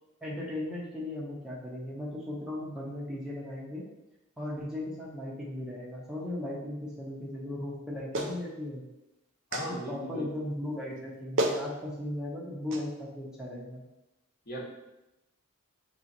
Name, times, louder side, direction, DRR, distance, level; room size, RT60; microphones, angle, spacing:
voice 1, 0.2-3.8 4.4-8.8 9.9-13.8, left 1 dB, 5° right, -5 dB, 0.7 m, -37 dB
Clapping, 8.1-8.4 9.5-9.7 11.0-11.1 11.4-11.6 12.7-12.8, right 1 dB, 60° right, 0.5 m, -29 dB
voice 2, 9.5-10.3 14.5-14.6, equal, 45° left, -3 dB, 0.9 m, -37 dB
6.6 x 2.9 x 2.6 m, 0.96 s
head